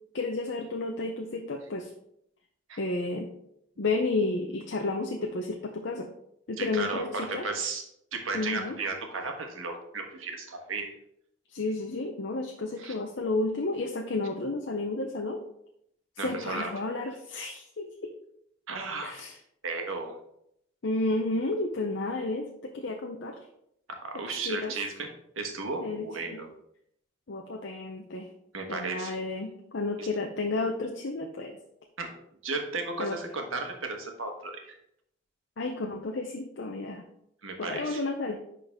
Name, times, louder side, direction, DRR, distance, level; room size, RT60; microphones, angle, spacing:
voice 1, 0.1-1.9 2.8-3.3 3.8-6.1 6.5-7.5 8.3-8.8 11.5-15.4 16.2-18.1 19.0-19.4 20.8-23.4 24.5-24.7 25.8-26.4 27.3-28.3 28.7-31.6 33.0-33.2 35.6-37.1 37.6-38.3, left 2 dB, 60° left, 2 dB, 0.6 m, -32 dB
voice 2, 6.6-7.8 8.1-10.9 12.8-12.9 16.2-16.7 18.7-19.2 19.6-20.2 23.9-25.1 25.3-26.5 28.5-29.2 30.0-30.1 32.0-32.1 32.4-34.8 37.4-38.0, right 3 dB, 85° right, 3 dB, 1.3 m, -34 dB
10.5 x 3.9 x 3.5 m, 0.74 s
head